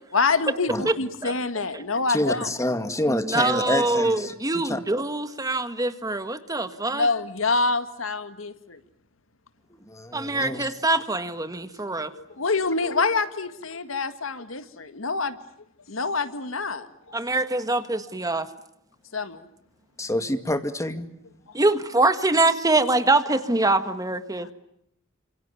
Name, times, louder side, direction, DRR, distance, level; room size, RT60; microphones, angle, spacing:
voice 1, 0.1-2.5 6.9-8.8 10.9-11.0 12.1-15.4 15.9-17.1 19.1-19.5 24.4-24.5, left 4 dB, 80° left, 2.0 m, -26 dB
voice 2, 2.1-4.8 9.9-10.7 20.0-21.1, left 1 dB, 15° left, 2.2 m, -27 dB
voice 3, 3.1-7.1 10.1-12.1 17.1-18.5 21.5-24.5, right 2 dB, 20° right, 1.6 m, -24 dB
29.5 x 27.0 x 7.0 m
head